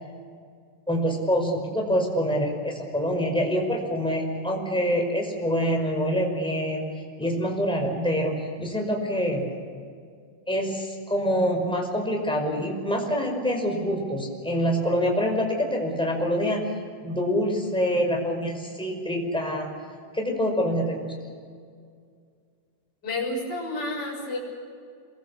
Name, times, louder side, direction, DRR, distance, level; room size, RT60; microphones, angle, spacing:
voice 1, 0.9-6.8 7.2-9.4 10.5-16.6 17.0-19.7 20.1-21.0, equal, ahead, 0 dB, 4.7 m, -25 dB
voice 2, 23.0-24.4, left 2 dB, 25° left, -5 dB, 6.9 m, -30 dB
27.5 x 22.5 x 7.1 m, 2.2 s
omnidirectional pair, 4.6 m